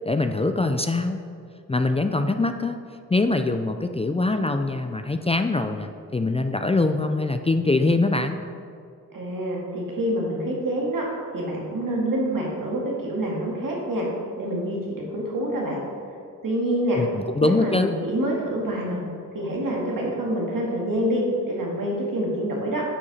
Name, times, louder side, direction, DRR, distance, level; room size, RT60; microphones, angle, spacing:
voice 1, 0.1-1.2 1.7-2.8 3.1-8.4 17.0-18.0, left 2 dB, 20° left, 7 dB, 0.4 m, -23 dB
voice 2, 9.1-11.0 11.3-14.1 14.4-15.8 16.4-17.0 17.4-19.1 19.3-22.8, right 1 dB, 70° right, -3 dB, 1.9 m, -26 dB
8.7 x 4.9 x 4.2 m, 2.3 s
cardioid pair, 50°, 34 cm